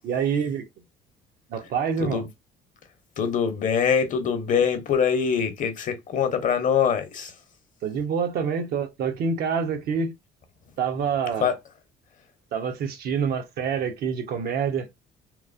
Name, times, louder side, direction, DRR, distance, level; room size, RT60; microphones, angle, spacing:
voice 1, 0.0-0.7 1.5-2.2 7.8-10.1 10.8-11.5 12.5-14.9, right 6 dB, 65° right, 0.8 m, -26 dB
voice 2, 3.2-7.4 11.4-11.5, left 7 dB, 50° left, 0.7 m, -23 dB
3.0 x 2.1 x 2.4 m
cardioid pair, 110°, 17 cm